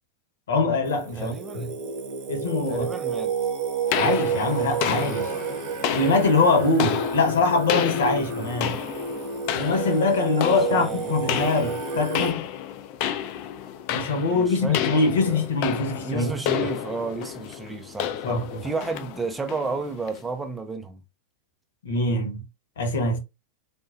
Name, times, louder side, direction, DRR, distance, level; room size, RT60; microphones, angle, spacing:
voice 1, 0.5-1.7 2.3-2.9 3.9-5.3 5.9-8.8 9.5-12.5 13.9-16.3 16.6-16.7 18.2-18.7 21.8-22.4 22.8-23.2, left 3 dB, 65° left, 1.0 m, -23 dB
Singing, 0.8-12.3, right 5 dB, 45° right, 0.8 m, -30 dB
voice 2, 1.1-1.7 2.7-3.3 10.7-11.1 14.3-15.4 16.1-18.4 18.6-21.0, right 4 dB, 10° right, 0.5 m, -32 dB
sound 1, 3.9-20.3, left 10 dB, 45° left, 0.4 m, -31 dB
3.6 x 2.3 x 2.5 m
figure-of-eight pair, 90°, 0 cm